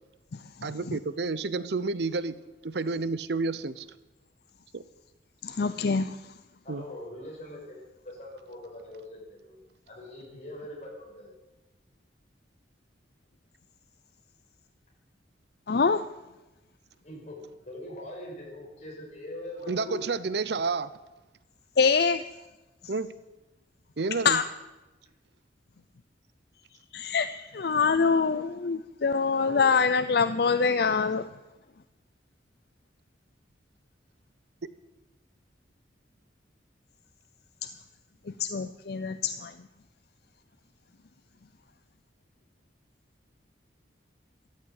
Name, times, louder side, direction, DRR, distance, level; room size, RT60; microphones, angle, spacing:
voice 1, 0.6-2.4 2.6-3.9 4.7-4.8 6.7-6.8 19.7-20.9 22.9-23.1 24.0-24.4, right 3 dB, 65° right, 16 dB, 0.7 m, -30 dB
voice 2, 5.4-6.2 15.7-16.0 21.8-22.2 24.2-24.4 26.9-31.3 38.4-39.5, left 5 dB, 60° left, 12 dB, 0.5 m, -25 dB
voice 3, 6.6-7.8 8.0-11.3 17.0-20.2 29.3-29.9, left 1 dB, 40° left, -2 dB, 6.2 m, -42 dB
13.5 x 13.0 x 8.1 m, 1.1 s
head